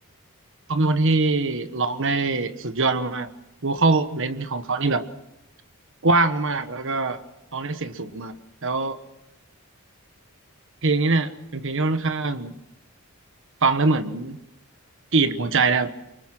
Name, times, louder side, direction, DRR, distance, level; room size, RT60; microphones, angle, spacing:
voice 1, 0.7-3.3 3.6-5.1 6.0-7.2 7.5-8.4 8.6-9.0 10.8-12.5 13.6-14.4 15.1-15.9, right 3 dB, 60° right, 11 dB, 1.3 m, -23 dB
25.0 x 23.5 x 6.1 m, 0.88 s
head